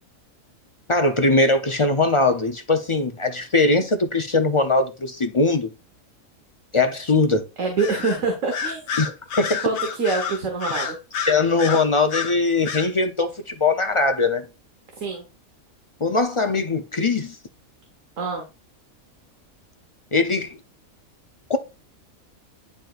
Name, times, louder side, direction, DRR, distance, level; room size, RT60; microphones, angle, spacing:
voice 1, 0.9-5.7 6.7-7.4 9.0-9.6 11.3-14.4 16.0-17.4 20.1-20.6 21.5-21.6, left 3 dB, 45° left, 0.4 m, -21 dB
voice 2, 7.6-8.8 9.6-11.0 15.0-15.2 18.2-18.5, right 4 dB, 65° right, 1.6 m, -25 dB
Bird vocalization bird call bird song, 7.8-8.2 8.5-12.3 12.6-12.9, left 7 dB, 80° left, 1.4 m, -29 dB
9.2 x 5.3 x 2.5 m
omnidirectional pair, 1.5 m